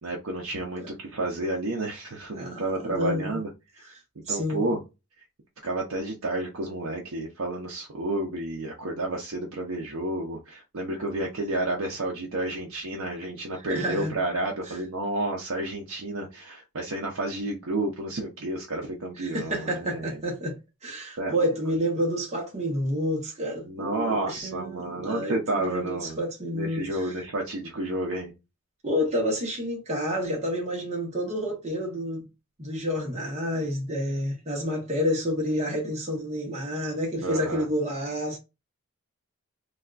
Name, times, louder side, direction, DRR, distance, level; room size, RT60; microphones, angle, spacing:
voice 1, 0.0-3.9 4.3-4.8 5.6-20.2 21.2-21.4 23.7-26.2 26.5-28.3 37.2-37.7, right 2 dB, 75° right, 0.6 m, -31 dB
voice 2, 2.3-3.4 4.3-4.7 13.7-14.1 14.7-14.8 19.2-20.6 20.8-27.1 28.8-32.2 32.6-38.4, equal, 30° right, 0.9 m, -29 dB
3.4 x 2.3 x 2.3 m
head